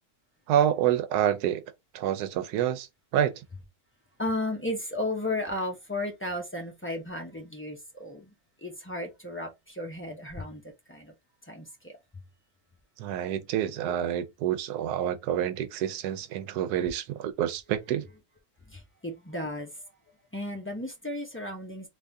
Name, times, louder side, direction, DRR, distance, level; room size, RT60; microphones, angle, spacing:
voice 1, 0.5-1.6 1.9-2.9 3.1-3.4 13.0-18.1, right 10 dB, 90° right, 1.1 m, -27 dB
voice 2, 4.2-11.1 11.4-12.0 18.7-19.9 20.3-21.9, left 1 dB, 20° left, 0.3 m, -34 dB
3.5 x 2.8 x 2.6 m
omnidirectional pair, 1.6 m